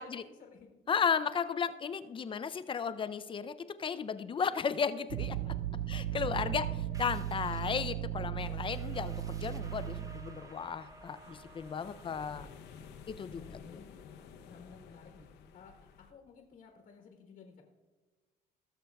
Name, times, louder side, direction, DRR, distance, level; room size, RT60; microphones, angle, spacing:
voice 1, 0.0-0.7 5.9-6.3 6.6-6.7 11.8-12.7 13.2-13.9 14.4-15.3 15.5-17.6, left 5 dB, 55° left, 2 dB, 1.2 m, -56 dB
voice 2, 0.9-5.5 5.9-6.6 7.0-12.5 13.1-13.6, left 6 dB, 30° left, 13 dB, 0.4 m, -34 dB
sound 1, 5.1-10.4, right 12 dB, 80° right, 0.4 m, -36 dB
sound 2, 6.9-16.2, right 2 dB, 20° right, 0.7 m, -56 dB
sound 3, 8.4-16.1, left 6 dB, 80° left, 0.8 m, -54 dB
18.5 x 6.6 x 2.3 m, 1.3 s
cardioid pair, 110°, 17 cm